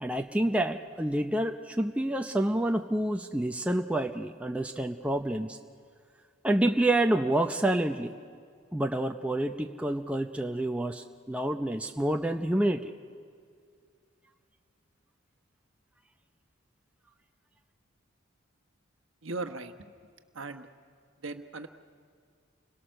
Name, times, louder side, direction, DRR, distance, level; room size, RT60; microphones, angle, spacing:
voice 1, 0.0-5.6 6.4-8.1 8.7-12.9, right 1 dB, 5° right, 4 dB, 0.6 m, -28 dB
voice 2, 19.2-19.7 20.3-20.7 21.2-21.7, right 3 dB, 70° right, 7 dB, 1.2 m, -37 dB
29.5 x 22.0 x 6.5 m, 2.2 s
head